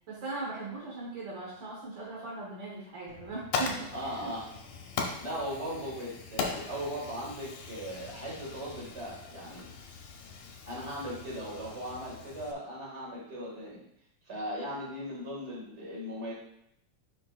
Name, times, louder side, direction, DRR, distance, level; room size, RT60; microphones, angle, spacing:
voice 1, 0.1-4.3, right 3 dB, 90° right, -4 dB, 1.0 m, -39 dB
Fire, 3.1-12.5, left 5 dB, 70° left, 1.9 m, -39 dB
voice 2, 3.9-4.5 5.2-9.7 10.7-13.8 14.2-16.3, equal, 25° right, -5 dB, 1.5 m, -38 dB
7.2 x 6.0 x 2.4 m, 0.76 s
omnidirectional pair, 4.1 m